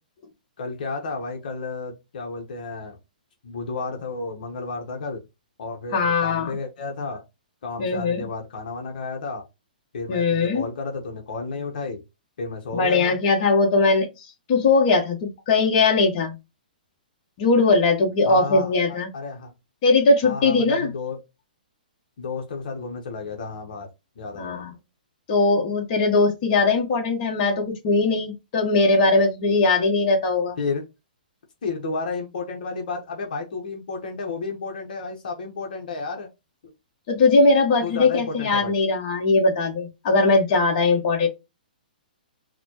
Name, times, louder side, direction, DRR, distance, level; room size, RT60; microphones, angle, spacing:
voice 1, 0.6-3.0 3.4-5.2 5.6-7.2 7.6-9.4 9.9-12.0 12.4-13.2 18.2-19.5 20.2-21.2 22.2-23.9 24.2-24.6 30.6-30.9 31.6-36.3 36.6-36.7 37.8-38.7, left 4 dB, 65° left, 1.0 m, -32 dB
voice 2, 5.9-6.5 7.8-8.2 10.1-10.7 12.7-16.3 17.4-19.1 19.8-20.9 24.3-24.7 25.3-30.6 37.1-41.3, left 3 dB, 40° left, 1.2 m, -20 dB
4.0 x 2.2 x 2.9 m
hypercardioid pair, 150°, 5 cm